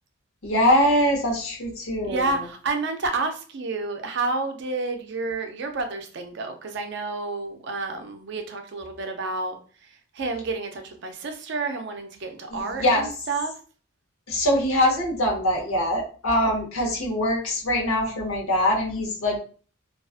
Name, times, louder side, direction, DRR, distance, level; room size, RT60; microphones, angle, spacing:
voice 1, 0.4-2.5 12.5-13.1 14.3-19.4, left 1 dB, 85° left, -1 dB, 0.8 m, -23 dB
voice 2, 2.0-9.6 10.1-13.5 16.4-16.5, right 3 dB, 55° right, 5 dB, 0.4 m, -30 dB
2.4 x 2.3 x 2.3 m, 0.40 s
head